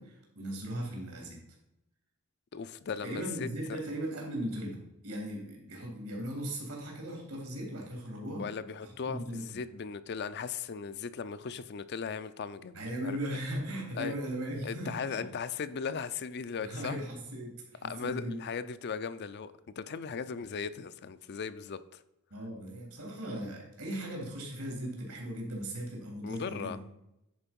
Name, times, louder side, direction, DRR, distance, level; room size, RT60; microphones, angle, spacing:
voice 1, 0.0-1.4 3.0-4.8 5.0-8.5 9.1-9.4 12.7-15.2 16.6-18.4 22.3-26.8, right 1 dB, 80° right, 0 dB, 3.1 m, -38 dB
voice 2, 2.5-3.5 8.4-12.8 13.0-13.2 14.0-14.1 14.6-17.0 17.8-22.0 26.2-26.8, left 6 dB, 50° left, 13 dB, 0.4 m, -37 dB
10.0 x 4.5 x 5.3 m, 0.88 s
head